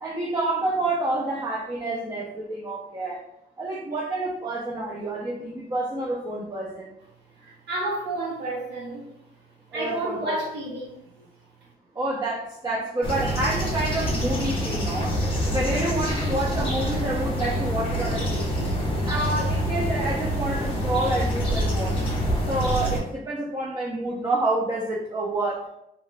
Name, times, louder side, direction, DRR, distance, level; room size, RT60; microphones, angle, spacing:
voice 1, 0.0-3.2 3.6-6.9 9.7-10.5 12.0-15.2 15.4-18.7 19.0-22.0 22.4-25.6, right 2 dB, 25° right, -4 dB, 0.4 m, -28 dB
voice 2, 7.4-9.1 9.7-11.0, right 1 dB, 80° right, -5 dB, 0.8 m, -30 dB
sound 1, 13.0-23.0, equal, 30° left, 0.8 m, -26 dB
2.8 x 2.2 x 3.1 m, 0.80 s
wide cardioid pair, 150°, 18 cm